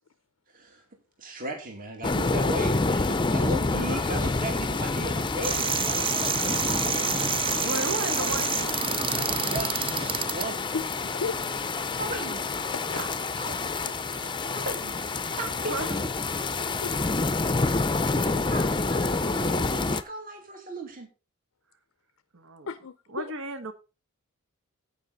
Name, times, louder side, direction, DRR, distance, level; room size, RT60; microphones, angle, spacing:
voice 1, 0.5-0.8 1.2-6.1 7.6-8.5 9.4-9.9 10.2-10.7 12.0-12.7 12.9-13.0 13.4-15.0 15.3-16.0 18.1-21.1, right 2 dB, 40° right, 2.5 m, -37 dB
sound 1, 2.0-20.0, left 3 dB, 20° left, 0.6 m, -28 dB
sound 2, 5.4-10.5, right 7 dB, 25° right, 0.4 m, -28 dB
voice 2, 6.2-7.1 7.4-7.7 10.7-11.4 12.7-13.0 16.6-17.1 22.7-23.3, left 5 dB, 65° left, 0.5 m, -36 dB
voice 3, 7.5-8.8 15.2-15.9 22.3-22.7 23.1-23.7, right 2 dB, 60° right, 1.3 m, -34 dB
16.0 x 5.7 x 4.0 m
head